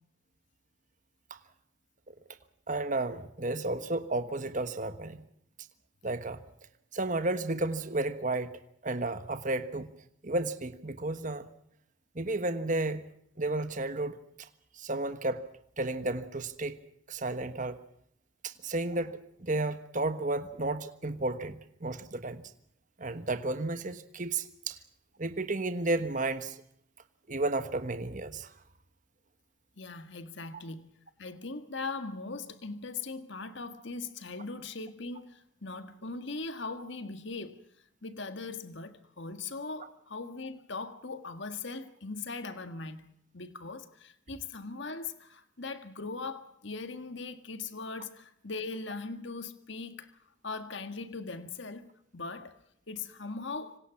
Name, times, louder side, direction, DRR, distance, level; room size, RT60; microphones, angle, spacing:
voice 1, 2.7-5.2 6.0-6.4 6.9-8.5 8.8-9.9 10.2-11.4 12.1-13.0 13.4-14.2 14.8-15.4 15.8-16.8 17.1-17.8 18.4-22.4 23.0-24.8 25.2-26.6 27.3-28.5, right 2 dB, 35° right, 1.3 m, -32 dB
voice 2, 29.8-37.6 38.0-50.1 50.4-52.6 52.9-53.8, left 3 dB, 55° left, 1.7 m, -40 dB
26.0 x 26.0 x 5.9 m
head